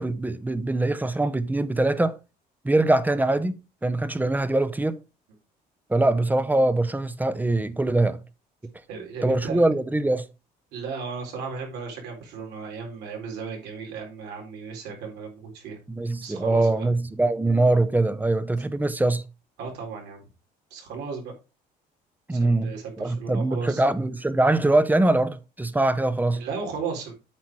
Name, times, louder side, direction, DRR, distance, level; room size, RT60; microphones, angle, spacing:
voice 1, 0.0-2.2 2.6-5.0 5.9-8.2 9.2-10.3 15.9-19.2 22.3-26.5, right 2 dB, 10° right, 0.7 m, -23 dB
voice 2, 8.9-9.6 10.7-15.8 16.2-16.9 19.6-20.2 20.7-21.3 22.3-23.8 26.4-27.1, right 5 dB, 85° right, 4.2 m, -35 dB
8.5 x 5.8 x 4.7 m
cardioid pair, 110°, 17 cm